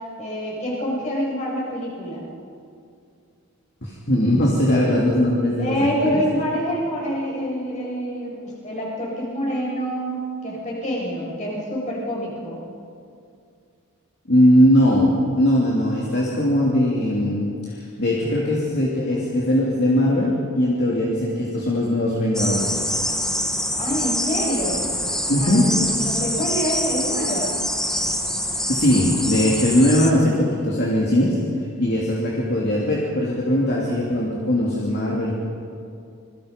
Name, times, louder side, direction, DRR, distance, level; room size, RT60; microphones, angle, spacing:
voice 1, 0.2-2.2 5.5-12.6 23.8-24.9 25.4-27.6, equal, 30° left, -4 dB, 7.2 m, -26 dB
voice 2, 3.8-5.7 6.0-6.2 14.3-15.1 15.4-17.5 18.0-22.8 25.3-25.7 28.7-31.4 31.8-35.3, left 1 dB, 50° left, -4 dB, 3.1 m, -20 dB
sound 1, 22.3-30.1, equal, 5° left, 1.4 m, -25 dB
27.5 x 22.0 x 5.4 m, 2.4 s
head